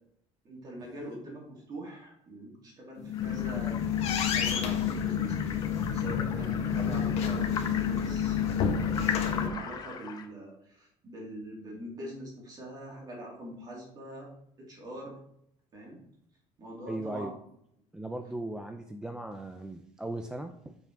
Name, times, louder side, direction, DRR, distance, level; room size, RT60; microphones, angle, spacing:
voice 1, 0.4-3.8 4.2-8.4 8.7-14.3 14.6-15.2 15.7-16.0 16.6-17.4, right 1 dB, 30° right, -2 dB, 2.7 m, -43 dB
sound 1, 3.0-9.5, left 8 dB, 55° left, 1.2 m, -29 dB
sound 2, 3.1-10.2, left 7 dB, 30° left, 0.8 m, -40 dB
voice 2, 16.9-17.3 17.9-20.8, right 1 dB, 5° right, 6 dB, 0.3 m, -38 dB
7.4 x 5.4 x 4.6 m, 0.72 s
cardioid pair, 175°, 13 cm